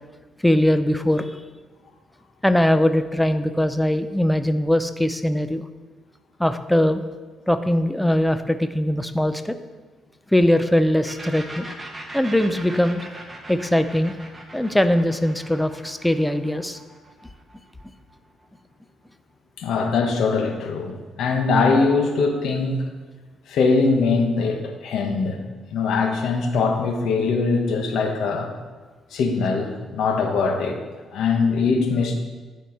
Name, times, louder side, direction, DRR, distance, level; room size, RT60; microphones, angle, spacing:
voice 1, 0.4-1.4 2.4-5.6 6.4-7.0 7.5-9.5 10.3-11.7 12.1-13.0 13.5-14.2 14.5-16.8, left 1 dB, 5° left, 10 dB, 0.5 m, -21 dB
sound 1, 11.0-18.6, right 1 dB, 20° right, 1.3 m, -40 dB
voice 2, 19.6-22.8 23.5-25.4 25.7-28.5 29.1-30.8 31.1-32.1, left 4 dB, 75° left, 4 dB, 1.1 m, -22 dB
10.5 x 4.6 x 4.5 m, 1.4 s
cardioid pair, 90°, 0 cm